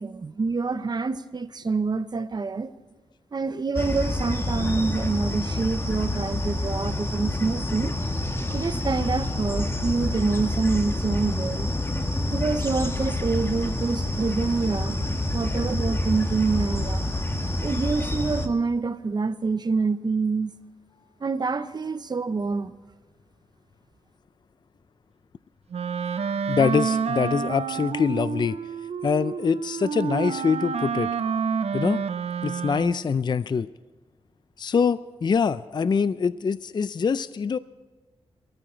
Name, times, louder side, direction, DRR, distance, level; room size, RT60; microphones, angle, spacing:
voice 1, 0.0-2.7 3.3-7.9 8.5-11.7 12.3-15.0 15.3-17.0 17.6-20.5 21.2-22.7, right 4 dB, 40° right, 12 dB, 0.8 m, -26 dB
sound 1, 3.7-18.5, left 1 dB, 25° left, 1.6 m, -28 dB
Wind instrument woodwind instrument, 25.7-33.1, right 6 dB, 75° right, 0.7 m, -29 dB
voice 2, 26.5-28.6 29.0-31.1 31.7-32.0 32.4-33.7 34.6-37.6, left 6 dB, 45° left, 15 dB, 0.4 m, -24 dB
22.5 x 14.0 x 4.5 m, 1.3 s
wide cardioid pair, 105°, 11 cm